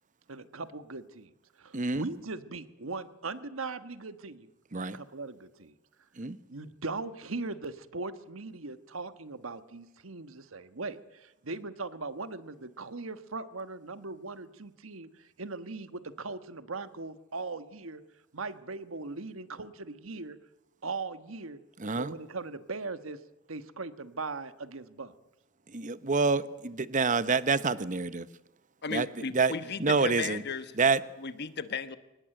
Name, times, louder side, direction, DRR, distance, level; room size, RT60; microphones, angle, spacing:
voice 1, 0.3-1.3 1.6-5.7 6.5-15.1 15.4-18.0 18.3-20.4 20.8-21.6 21.9-23.2 23.5-25.1, right 3 dB, 75° right, 1.4 m, -39 dB
voice 2, 1.7-2.1 4.7-5.0 6.2-6.4 21.8-22.1 25.7-28.3 28.9-29.1 29.3-29.5 29.8-30.4 30.8-31.0, right 4 dB, 40° right, 0.9 m, -27 dB
voice 3, 28.8-30.8 31.2-32.0, left 5 dB, 55° left, 1.2 m, -35 dB
23.5 x 19.5 x 9.1 m
head